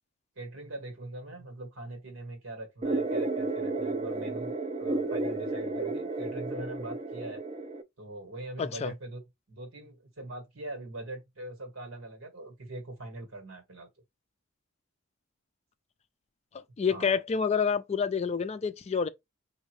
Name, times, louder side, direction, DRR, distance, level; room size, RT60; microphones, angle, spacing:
voice 1, 0.3-7.4 8.0-9.2 9.5-13.9 16.9-17.1, right 1 dB, 80° right, 1.6 m, -42 dB
sound 1, 2.8-7.8, right 2 dB, 30° right, 0.4 m, -32 dB
voice 2, 8.6-8.9 16.8-19.1, left 6 dB, 30° left, 0.3 m, -28 dB
5.0 x 2.7 x 3.1 m
head